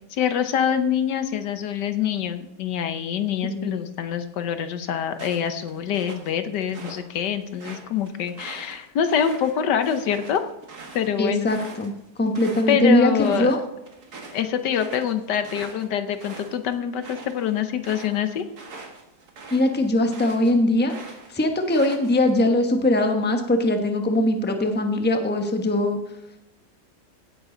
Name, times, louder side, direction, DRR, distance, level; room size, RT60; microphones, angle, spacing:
voice 1, 0.1-10.4 10.9-11.5 12.7-13.6 14.3-18.4, left 8 dB, 80° left, 9 dB, 1.5 m, -25 dB
voice 2, 3.4-3.8 11.2-11.9 12.2-13.6 19.5-20.9 21.3-26.0, left 1 dB, 5° left, 5 dB, 0.9 m, -21 dB
sound 1, 5.1-7.0 7.4-12.7 13.1-13.6 13.9-20.5 20.8-22.3, right 3 dB, 65° right, 2.2 m, -42 dB
16.5 x 9.3 x 3.9 m, 0.87 s
omnidirectional pair, 1.8 m